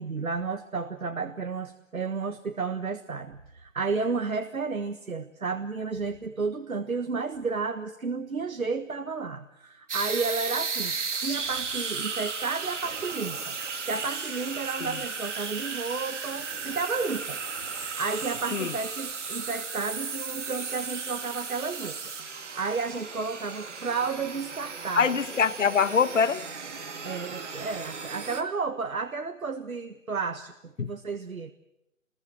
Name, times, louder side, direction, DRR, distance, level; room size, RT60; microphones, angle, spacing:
voice 1, 0.0-10.9 11.2-13.6 13.9-17.4 17.8-25.1 27.0-31.5, right 4 dB, 90° right, 1.6 m, -32 dB
sound 1, 9.9-28.4, right 5 dB, 60° right, 3.0 m, -35 dB
voice 2, 24.9-26.4 30.8-30.9, left 6 dB, 65° left, 1.1 m, -24 dB
26.0 x 21.5 x 7.8 m
figure-of-eight pair, 160°, 41 cm